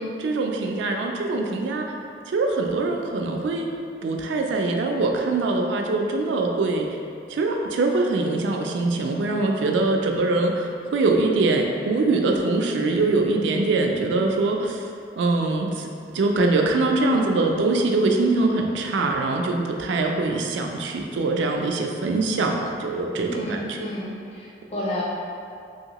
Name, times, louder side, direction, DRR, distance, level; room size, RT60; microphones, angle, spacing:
voice 1, 0.2-1.9 2.3-3.7 4.0-6.9 7.3-14.8 15.2-15.9 16.1-23.6, right 3 dB, 80° right, 2 dB, 0.3 m, -23 dB
voice 2, 23.3-25.0, left 1 dB, 35° left, -7 dB, 0.6 m, -31 dB
2.9 x 2.8 x 2.8 m, 2.5 s
head